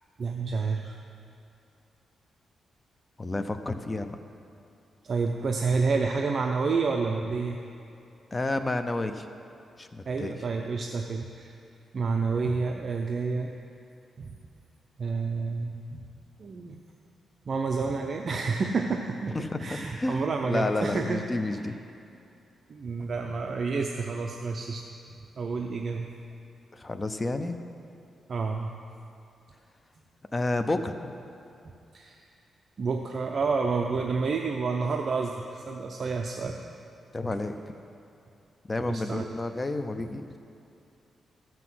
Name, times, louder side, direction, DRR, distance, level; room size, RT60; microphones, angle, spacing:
voice 1, 0.2-1.0 5.0-7.6 10.1-11.5 11.9-13.5 14.2-14.4 15.0-16.0 16.4-16.8 17.5-21.2 21.5-21.6 22.7-24.8 25.4-26.1 28.3-28.7 31.9-32.2 32.8-36.6 38.9-39.3, right 4 dB, 45° right, 2 dB, 0.6 m, -29 dB
voice 2, 3.2-4.2 8.3-9.3 9.8-10.4 19.3-21.8 26.7-27.6 30.3-31.1 37.1-37.6 38.7-40.2, left 2 dB, 20° left, 8 dB, 0.6 m, -30 dB
14.0 x 6.0 x 7.7 m, 2.6 s
cardioid pair, 125°, 0 cm